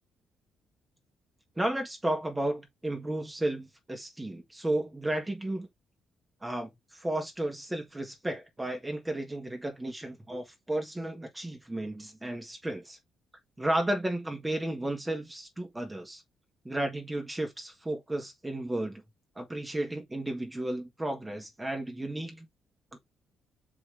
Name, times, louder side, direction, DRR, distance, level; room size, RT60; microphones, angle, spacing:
voice 1, 1.6-5.7 6.4-13.0 13.6-16.2 16.6-19.0 19.3-22.5 22.9-23.0, right 1 dB, 10° right, 1.7 m, -33 dB
5.8 x 5.0 x 3.5 m
cardioid pair, 90°, 0 cm